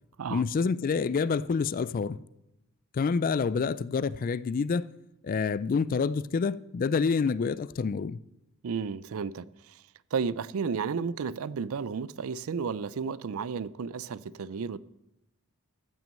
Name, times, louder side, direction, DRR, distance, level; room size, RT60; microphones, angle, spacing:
voice 1, 0.3-2.2 2.9-4.9 5.2-8.2, left 5 dB, 40° left, 0.3 m, -27 dB
voice 2, 8.6-9.8 10.1-14.8, right 5 dB, 70° right, 0.4 m, -33 dB
14.0 x 6.1 x 7.5 m
head